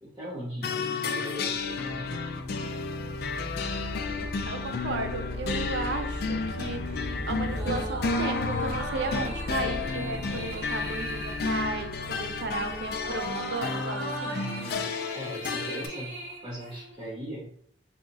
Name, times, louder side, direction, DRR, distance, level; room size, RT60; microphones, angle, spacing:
voice 1, 0.0-2.2 14.3-17.5, equal, 25° right, -8 dB, 0.8 m, -39 dB
sound 1, 0.6-15.9, left 4 dB, 55° left, 0.3 m, -32 dB
sound 2, 1.6-14.1, left 1 dB, 15° left, 0.7 m, -38 dB
voice 2, 4.5-14.4, right 3 dB, 70° right, 6 dB, 0.5 m, -35 dB
sound 3, 7.4-17.1, equal, 85° right, 0.9 m, -38 dB
2.7 x 2.4 x 3.9 m, 0.62 s
head